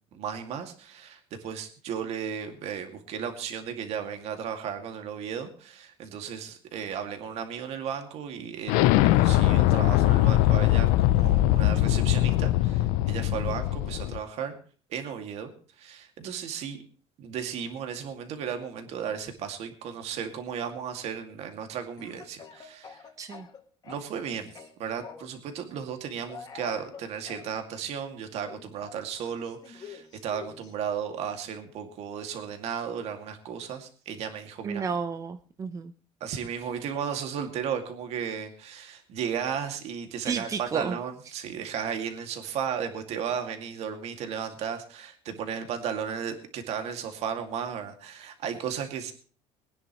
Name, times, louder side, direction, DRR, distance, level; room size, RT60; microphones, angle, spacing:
voice 1, 0.1-14.6 14.9-15.5 15.8-16.8 17.2-23.1 23.8-34.9 36.2-49.1, right 7 dB, 55° right, 6 dB, 2.3 m, -35 dB
Explosion, 8.7-14.2, left 16 dB, 90° left, 0.5 m, -22 dB
Speech / Cough, 22.0-24.2 24.5-25.4 26.3-27.5 28.4-30.7, left 6 dB, 30° left, 2.1 m, -46 dB
voice 2, 34.6-35.9 40.2-41.0, right 6 dB, 25° right, 9 dB, 0.7 m, -32 dB
22.5 x 10.0 x 3.1 m, 0.40 s
cardioid pair, 150°, 13 cm